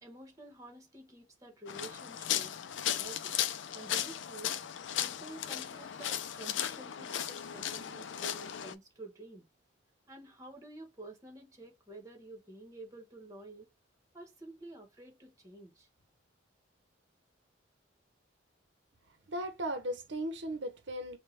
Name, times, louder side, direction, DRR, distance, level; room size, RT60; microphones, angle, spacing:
voice 1, 0.0-2.5 2.9-3.3 3.7-4.6 5.0-9.5 10.1-13.7 14.1-15.9, right 2 dB, 15° right, 1.1 m, -50 dB
sound 1, 1.7-8.7, left 10 dB, 70° left, 0.4 m, -36 dB
voice 2, 19.3-21.2, right 1 dB, 65° right, 0.7 m, -37 dB
5.4 x 2.2 x 3.2 m
head